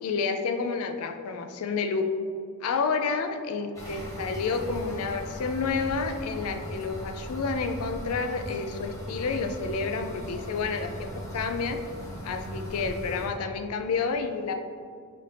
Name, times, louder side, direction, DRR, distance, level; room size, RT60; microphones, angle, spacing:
voice 1, 0.0-2.1 2.6-11.8 12.2-14.5, left 4 dB, 80° left, 6 dB, 0.4 m, -30 dB
sound 1, 3.7-13.3, equal, 15° left, 1.0 m, -38 dB
5.5 x 2.6 x 3.3 m, 2.1 s
head